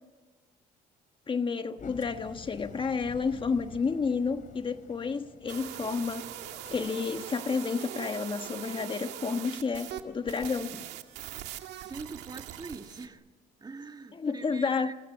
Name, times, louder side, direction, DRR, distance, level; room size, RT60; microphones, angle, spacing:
voice 1, 1.3-6.2 6.7-10.8 14.2-14.9, left 5 dB, 30° left, 8 dB, 1.3 m, -31 dB
Engine, 1.8-7.6, left 5 dB, 50° left, 3.4 m, -49 dB
sound 1, 5.5-10.0 10.3-13.1, right 12 dB, 90° right, 2.0 m, -41 dB
voice 2, 11.8-13.2 13.6-14.9, right 4 dB, 25° right, 7 dB, 1.7 m, -43 dB
24.0 x 21.5 x 8.2 m, 1.3 s
cardioid pair, 110°, 17 cm